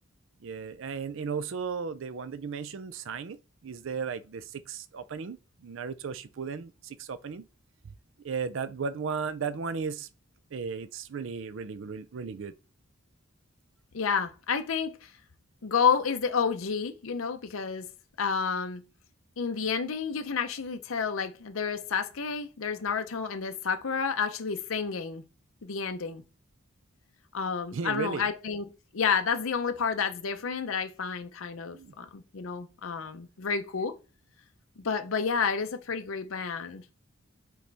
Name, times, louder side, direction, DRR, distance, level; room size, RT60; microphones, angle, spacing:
voice 1, 0.4-7.4 7.8-7.9 8.2-10.1 10.5-12.5 27.7-28.3 31.7-31.9, right 5 dB, 65° right, 0.4 m, -35 dB
voice 2, 13.9-15.1 15.6-17.9 18.2-18.8 19.4-25.2 25.6-26.2 27.3-28.7 28.9-33.9 34.8-36.8, left 6 dB, 75° left, 0.6 m, -30 dB
9.0 x 4.1 x 3.4 m
head